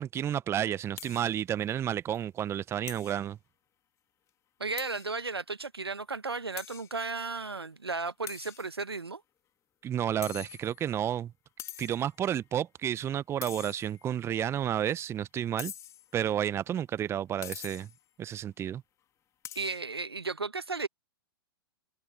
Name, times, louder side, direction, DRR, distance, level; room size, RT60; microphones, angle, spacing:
voice 1, 0.0-3.4 9.8-11.3 11.8-15.7 16.1-17.9 18.2-18.8, right 10 dB, 20° right, 1.1 m, -31 dB
sound 1, 1.0-1.4 1.7-1.8 2.1-2.2 2.9-3.2 4.8-5.2 5.6-5.7 6.6-6.9 8.3-9.0 10.2-10.9 11.6-12.1 13.4-14.2 15.6-16.1 17.4-18.0 19.4-19.8, left 10 dB, 25° left, 2.2 m, -44 dB
voice 2, 4.6-9.2 19.5-20.9, right 4 dB, 85° right, 1.5 m, -34 dB
figure-of-eight pair, 110°, 13 cm